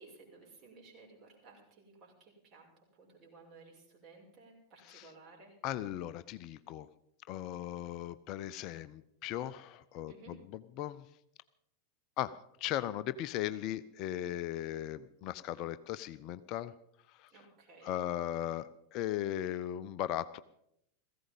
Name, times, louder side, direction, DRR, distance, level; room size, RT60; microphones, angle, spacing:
voice 1, 0.0-2.7 2.9-5.6 10.1-10.4 17.3-17.9, right 3 dB, 35° right, 0 dB, 6.1 m, -57 dB
voice 2, 5.6-6.9 7.3-10.4 10.8-11.0 12.2-16.7 17.2-17.3 17.8-20.4, left 12 dB, 40° left, 14 dB, 0.5 m, -37 dB
17.5 x 15.0 x 5.4 m, 0.76 s
figure-of-eight pair, 90°, 0 cm